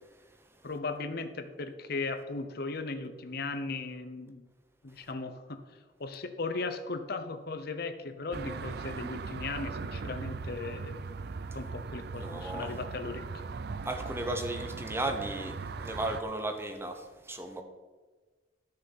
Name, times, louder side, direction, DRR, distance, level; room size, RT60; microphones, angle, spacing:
voice 1, 0.6-4.5 4.8-5.6 6.0-11.0 11.5-13.5, left 3 dB, 60° left, 9 dB, 0.9 m, -37 dB
sound 1, 8.3-16.2, right 4 dB, 65° right, 0.5 m, -39 dB
voice 2, 12.1-12.7 13.8-17.6, right 1 dB, 15° right, 5 dB, 1.1 m, -35 dB
12.5 x 6.6 x 5.6 m, 1.3 s
head